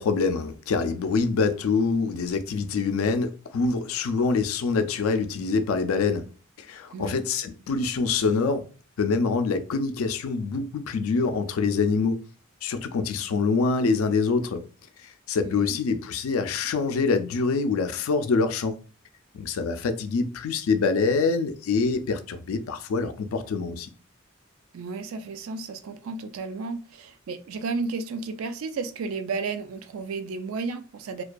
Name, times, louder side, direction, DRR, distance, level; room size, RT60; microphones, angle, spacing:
voice 1, 0.0-6.3 6.6-8.6 9.0-12.2 12.6-14.6 15.0-18.8 19.3-23.9, left 4 dB, 90° left, 0.4 m, -25 dB
voice 2, 15.4-15.8 24.7-31.2, right 4 dB, 85° right, 0.3 m, -33 dB
2.5 x 2.2 x 2.2 m
head